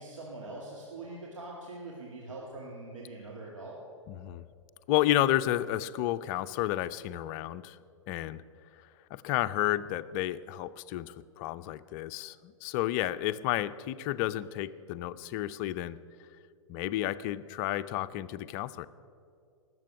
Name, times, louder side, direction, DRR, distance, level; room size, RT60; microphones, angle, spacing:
voice 1, 0.0-3.8, right 2 dB, 85° right, -3 dB, 2.3 m, -43 dB
voice 2, 4.1-4.4 4.9-7.8 8.1-8.4 9.1-16.0 16.7-18.9, left 14 dB, 40° left, 13 dB, 0.5 m, -31 dB
19.5 x 7.7 x 6.3 m, 2.4 s
hypercardioid pair, 115°, 16 cm